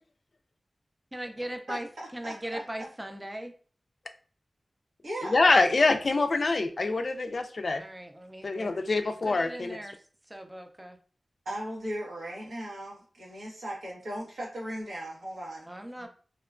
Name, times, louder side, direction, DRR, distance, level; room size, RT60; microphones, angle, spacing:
voice 1, 1.1-3.5 7.8-8.7 9.0-10.0 10.3-11.0 15.7-16.1, right 1 dB, 15° right, 5 dB, 0.4 m, -39 dB
voice 2, 1.7-2.6 5.0-5.4 11.4-15.7 16.0-16.1, equal, 85° right, -3 dB, 1.0 m, -37 dB
voice 3, 5.2-7.8 8.4-9.8, left 3 dB, 65° left, 6 dB, 0.3 m, -25 dB
2.8 x 2.2 x 2.4 m, 0.41 s
wide cardioid pair, 55°, 0 cm